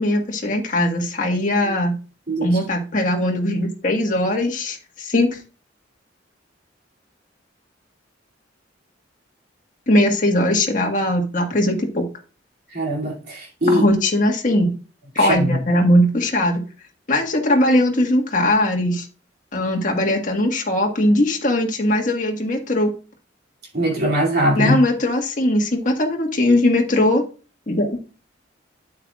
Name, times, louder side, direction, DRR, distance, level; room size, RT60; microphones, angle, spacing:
voice 1, 0.0-1.9 2.4-5.4 9.9-12.0 13.7-14.7 15.1-16.6 17.1-19.1 19.5-22.9 24.6-27.2 27.7-28.0, left 1 dB, 45° left, 1.6 m, -19 dB
voice 2, 12.7-13.8 15.1-15.6 23.7-24.8, equal, 55° right, 2.6 m, -21 dB
9.0 x 8.1 x 2.4 m
head